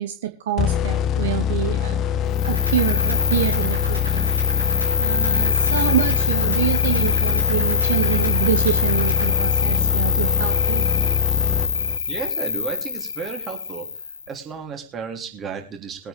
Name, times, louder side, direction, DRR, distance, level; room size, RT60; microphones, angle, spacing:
voice 1, 0.0-2.0 2.5-4.3 5.0-10.8, right 11 dB, 60° right, 8 dB, 0.9 m, -26 dB
sound 1, 0.6-12.2, left 9 dB, 30° left, 0.7 m, -23 dB
Cricket, 2.3-14.3, left 5 dB, 75° left, 0.7 m, -24 dB
sound 2, 2.4-9.3, right 3 dB, 80° right, 3.5 m, -39 dB
voice 2, 12.1-13.9 14.3-16.1, right 5 dB, 25° right, 3 dB, 2.9 m, -33 dB
21.5 x 9.1 x 3.4 m, 0.33 s
figure-of-eight pair, 90°, 0 cm